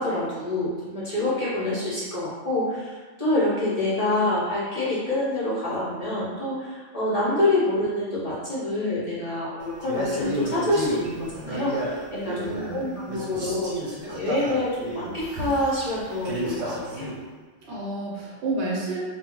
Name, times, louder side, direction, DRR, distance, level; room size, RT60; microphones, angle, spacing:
voice 1, 0.0-17.1, left 1 dB, 40° left, -8 dB, 0.6 m, -27 dB
Male speech man speaking, 9.8-12.8 13.1-17.2, right 1 dB, 90° right, 1.1 m, -32 dB
voice 2, 12.1-12.9 17.7-19.0, right 2 dB, 70° right, -5 dB, 0.8 m, -30 dB
2.2 x 2.0 x 3.6 m, 1.4 s
omnidirectional pair, 1.3 m